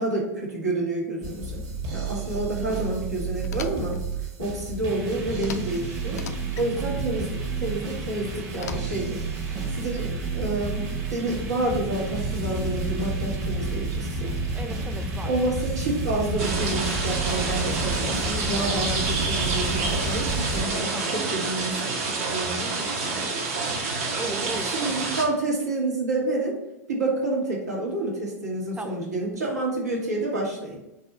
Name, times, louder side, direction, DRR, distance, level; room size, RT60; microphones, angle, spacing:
voice 1, 0.0-1.6 1.9-4.0 4.4-6.2 6.6-9.4 9.7-14.3 15.2-23.4 24.6-26.6 26.9-30.8, right 2 dB, 85° right, -3 dB, 1.5 m, -29 dB
sound 1, 1.2-20.6, right 3 dB, 35° right, 1.1 m, -30 dB
voice 2, 2.0-2.4 6.8-7.3 14.5-15.3 20.9-21.2 24.1-25.1 28.7-29.0, right 3 dB, 10° right, 7 dB, 0.5 m, -37 dB
sound 2, 3.4-4.0 5.4-5.8 6.1-6.7 8.5-9.2, left 7 dB, 75° left, 0.4 m, -39 dB
sound 3, 16.4-25.2, right 3 dB, 60° right, 0.9 m, -28 dB
4.1 x 2.6 x 4.3 m, 0.92 s
hypercardioid pair, 95°, 9 cm